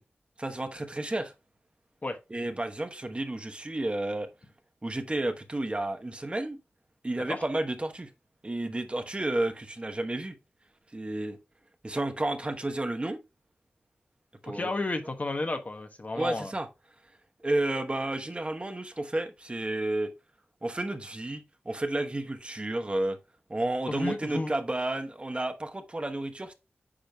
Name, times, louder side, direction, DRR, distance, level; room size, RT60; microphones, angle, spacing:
voice 1, 0.4-1.3 2.3-4.3 4.8-6.6 7.0-8.1 8.4-10.4 10.9-11.4 11.8-13.2 14.4-14.7 16.1-16.7 17.4-20.1 20.6-23.2 23.5-26.5, right 1 dB, 30° right, 1.0 m, -31 dB
voice 2, 14.4-16.5 23.9-24.5, left 2 dB, 40° left, 1.1 m, -32 dB
8.8 x 5.0 x 2.3 m
cardioid pair, 55°, 4 cm